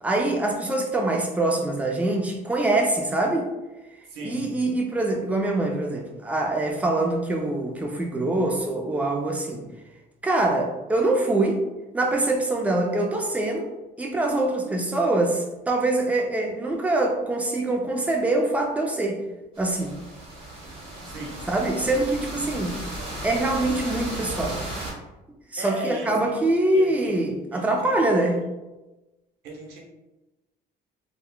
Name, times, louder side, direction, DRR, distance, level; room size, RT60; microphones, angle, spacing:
voice 1, 0.0-3.5 4.2-9.7 10.2-11.6 11.9-13.7 14.0-19.2 19.6-20.0 21.5-22.8 23.2-24.6 25.5-28.4, right 2 dB, 10° right, 1 dB, 0.4 m, -24 dB
voice 2, 4.0-4.5 14.6-14.8 21.0-21.5 25.6-26.4 26.7-27.1 27.5-28.5 29.4-29.8, right 1 dB, 90° right, -1 dB, 0.8 m, -36 dB
sound 1, 19.5-24.9, right 1 dB, 35° right, 1.2 m, -35 dB
3.4 x 2.3 x 2.3 m, 1.1 s
cardioid pair, 110°, 17 cm